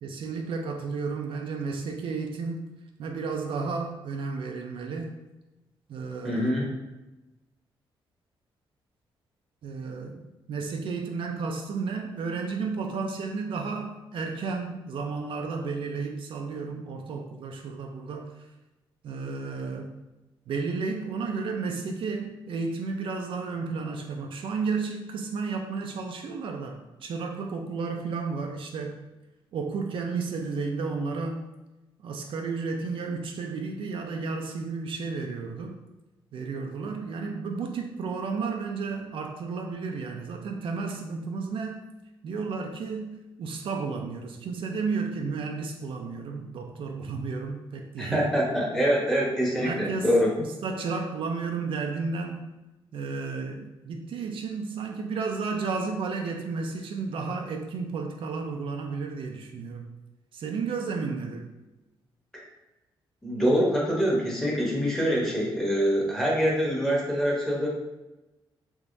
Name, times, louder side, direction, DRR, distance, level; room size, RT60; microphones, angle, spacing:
voice 1, 0.0-2.7 3.0-5.2 5.9-6.6 9.6-10.2 10.5-18.5 19.0-19.9 20.5-29.0 29.5-31.5 32.0-35.8 36.3-41.8 42.2-48.4 49.6-52.5 52.9-59.9 60.3-61.5, right 4 dB, 65° right, 2 dB, 0.4 m, -32 dB
voice 2, 6.2-6.7 48.0-50.3 63.2-67.7, equal, 5° left, -3 dB, 1.0 m, -25 dB
3.4 x 2.9 x 2.6 m, 1.0 s
cardioid pair, 90°, 9 cm